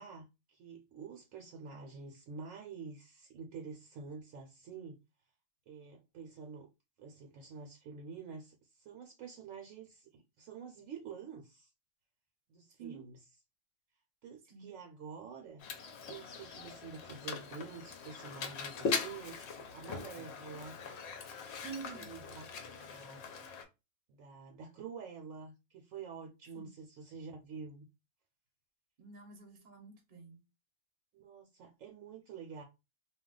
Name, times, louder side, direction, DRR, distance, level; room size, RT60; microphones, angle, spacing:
voice 1, 0.0-5.0 5.7-6.7 7.0-11.7 12.5-13.2 14.2-15.6 16.0-20.8 21.9-23.2 24.1-27.9 31.1-32.6, right 5 dB, 70° right, 0.9 m, -48 dB
Mechanisms, 15.6-23.6, left 5 dB, 60° left, 0.7 m, -41 dB
voice 2, 21.6-22.1 26.5-26.7 29.0-30.4, right 6 dB, 40° right, 0.7 m, -48 dB
2.3 x 2.2 x 3.7 m
omnidirectional pair, 1.5 m